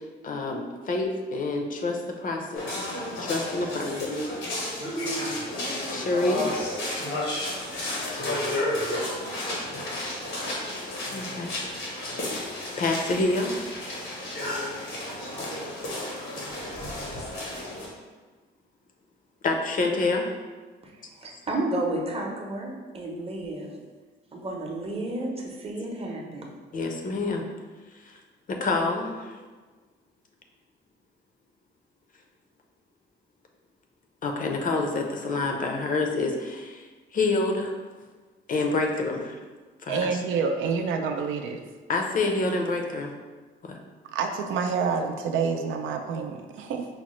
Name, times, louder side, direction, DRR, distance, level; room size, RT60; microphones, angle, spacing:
voice 1, 0.2-2.7 3.2-4.1 5.9-6.5 11.1-11.5 12.8-13.6 19.4-20.3 26.7-27.4 28.0-28.2 28.5-29.3 34.2-36.9 37.1-37.7 38.5-39.4 39.8-40.1 41.9-43.1 43.6-43.8, left 3 dB, 45° left, 2 dB, 0.5 m, -27 dB
sound 1, 2.6-17.9, left 1 dB, 90° left, 1.1 m, -32 dB
voice 2, 20.8-23.7 24.3-26.5, right 1 dB, 30° right, 0 dB, 0.7 m, -32 dB
voice 3, 39.9-41.6 44.1-46.9, right 5 dB, 85° right, 4 dB, 0.4 m, -28 dB
4.7 x 2.0 x 3.0 m, 1.4 s
cardioid pair, 90°, 20 cm